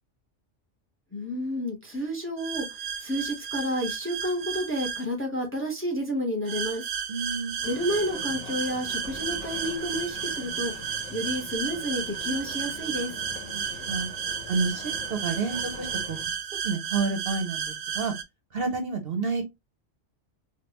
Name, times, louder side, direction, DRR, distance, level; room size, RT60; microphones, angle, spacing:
voice 1, 1.1-6.9 7.6-10.7 11.1-13.2, equal, 10° left, 0.7 m, -30 dB
sound 1, 2.4-5.0 6.5-18.2, right 7 dB, 85° right, 1.0 m, -33 dB
voice 2, 7.1-7.7 13.5-14.1 14.5-16.2 16.6-18.1 18.5-19.4, right 4 dB, 55° right, 0.9 m, -30 dB
sound 2, 7.6-16.3, left 4 dB, 85° left, 1.2 m, -43 dB
3.4 x 2.4 x 3.0 m
omnidirectional pair, 1.3 m